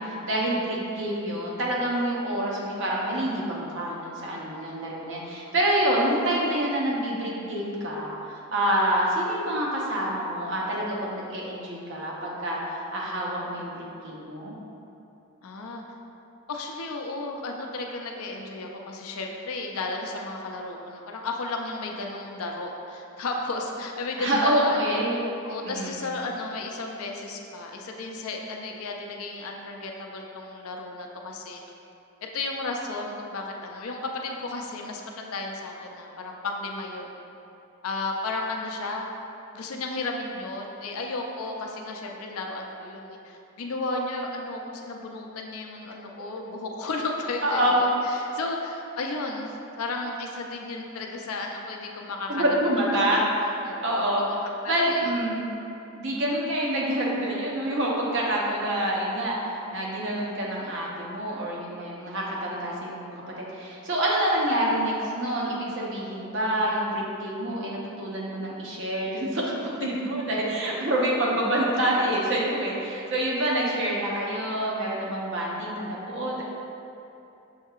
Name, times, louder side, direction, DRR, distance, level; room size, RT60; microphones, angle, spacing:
voice 1, 0.0-14.5 24.2-25.3 25.6-26.0 47.4-47.8 52.3-54.3 54.7-55.5 56.0-69.5 69.8-76.4, right 1 dB, 60° right, -4 dB, 0.7 m, -27 dB
voice 2, 15.4-15.8 16.5-24.8 25.4-31.6 32.3-37.1 37.8-39.1 39.5-52.5 53.6-54.4 54.6-55.1 69.8-69.9, left 2 dB, 80° left, 1 dB, 0.5 m, -34 dB
6.3 x 2.7 x 2.4 m, 2.8 s
head